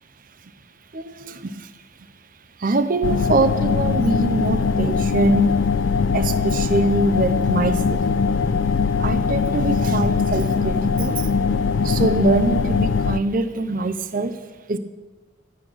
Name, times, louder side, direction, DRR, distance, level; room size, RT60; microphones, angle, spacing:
voice 1, 0.9-1.7 2.6-5.5 6.1-8.0 9.0-14.4 14.7-14.8, right 2 dB, 45° right, 10 dB, 0.5 m, -23 dB
sound 1, 3.0-13.2, left 5 dB, 75° left, 0.4 m, -21 dB
13.0 x 10.5 x 6.2 m, 1.3 s
head